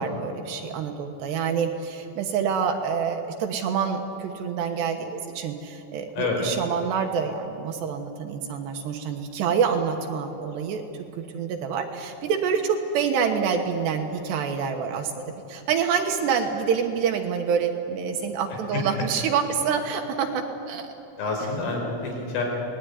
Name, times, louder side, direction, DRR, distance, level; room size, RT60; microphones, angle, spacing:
voice 1, 0.0-10.8 11.2-20.9, right 6 dB, 70° right, 4 dB, 3.0 m, -27 dB
voice 2, 21.2-22.4, left 3 dB, 80° left, 0 dB, 7.3 m, -28 dB
26.5 x 19.5 x 9.6 m, 2.9 s
omnidirectional pair, 5.7 m